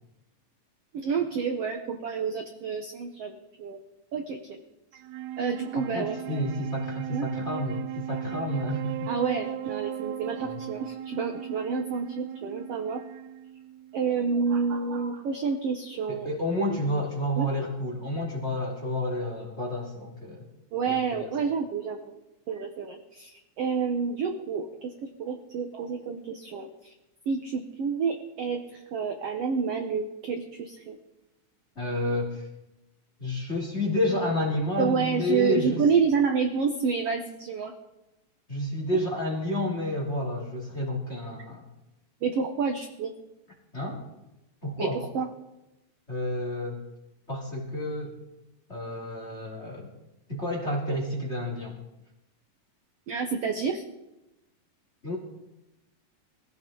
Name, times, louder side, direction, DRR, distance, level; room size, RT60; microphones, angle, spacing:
voice 1, 0.9-3.3 3.6-3.8 4.1-4.6 5.4-6.4 7.1-7.3 9.1-13.0 13.9-16.3 17.4-17.5 20.7-22.1 22.5-24.9 25.2-26.7 27.3-31.0 34.8-37.7 42.2-43.1 44.8-44.9 45.1-45.3 53.1-53.8, right 5 dB, 65° right, 4 dB, 1.5 m, -29 dB
Wind instrument woodwind instrument, 4.9-14.4, right 10 dB, 80° right, 1.7 m, -37 dB
voice 2, 5.7-9.1 10.4-10.6 16.1-20.5 20.8-21.3 31.7-32.5 33.2-35.9 38.5-41.7 43.7-44.0 44.6-45.0 46.1-46.8 47.3-48.2 48.7-49.9 50.3-51.8 55.0-55.2, left 1 dB, 20° left, -1 dB, 2.7 m, -30 dB
21.5 x 16.0 x 3.9 m, 0.94 s
omnidirectional pair, 4.1 m